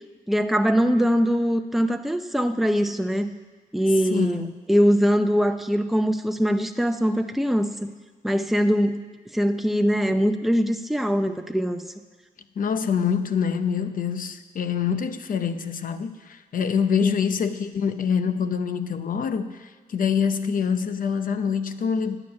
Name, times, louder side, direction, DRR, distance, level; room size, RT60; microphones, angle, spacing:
voice 1, 0.3-3.3 3.7-7.9 8.2-9.0 9.3-11.8 17.0-17.1, equal, ahead, 6 dB, 0.6 m, -22 dB
voice 2, 4.1-4.5 12.6-22.2, left 6 dB, 65° left, 10 dB, 0.8 m, -25 dB
11.0 x 6.7 x 9.5 m, 1.4 s
wide cardioid pair, 100°, 15 cm